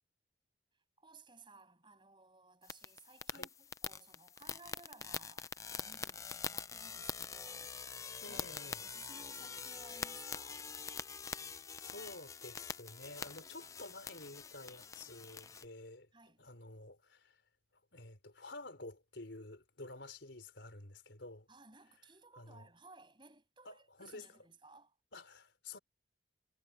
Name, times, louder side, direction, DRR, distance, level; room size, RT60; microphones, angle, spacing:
voice 1, 1.0-8.0 8.3-8.5 8.8-10.7 16.1-16.5 21.5-24.9, right 3 dB, 25° right, 7.6 m, -59 dB
sound 1, 2.6-15.7, left 6 dB, 15° left, 0.4 m, -45 dB
voice 2, 8.2-8.8 11.8-16.1 16.4-17.4 17.9-21.5 22.4-22.7 23.6-24.3 25.1-25.8, left 2 dB, 75° left, 3.7 m, -51 dB
head